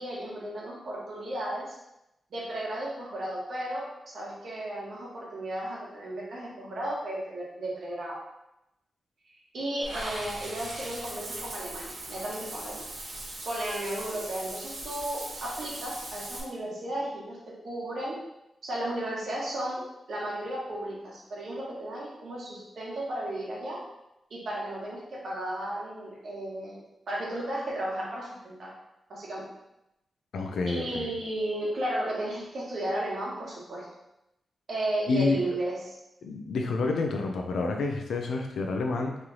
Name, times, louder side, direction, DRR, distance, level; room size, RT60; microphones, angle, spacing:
voice 1, 0.0-1.8 2.3-8.2 9.5-12.8 13.4-17.4 17.6-18.2 18.6-19.8 20.1-23.8 24.3-26.8 27.1-28.7 29.1-29.5 30.7-33.9 34.7-36.0, right 1 dB, 60° right, -5 dB, 1.2 m, -34 dB
Water / Bathtub (filling or washing), 9.8-16.4, right 1 dB, 85° right, 1.1 m, -39 dB
voice 2, 30.3-31.1 35.1-35.4 36.2-39.2, left 3 dB, 90° left, 3 dB, 0.5 m, -29 dB
3.2 x 2.9 x 3.8 m, 0.88 s
wide cardioid pair, 160°, 0 cm